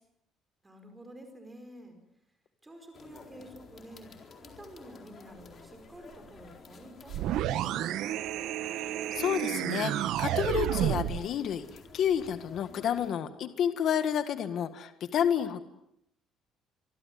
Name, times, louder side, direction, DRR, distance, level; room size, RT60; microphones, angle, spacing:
voice 1, 0.6-2.0 2.6-8.5, right 1 dB, 10° right, 5 dB, 5.1 m, -50 dB
sound 1, 2.9-13.1, left 4 dB, 30° left, 4.1 m, -53 dB
sound 2, 7.1-11.3, right 12 dB, 65° right, 1.1 m, -30 dB
voice 2, 8.6-11.6 11.9-15.6, left 9 dB, 45° left, 10 dB, 1.7 m, -30 dB
25.0 x 24.5 x 9.4 m, 0.77 s
cardioid pair, 175°, 0 cm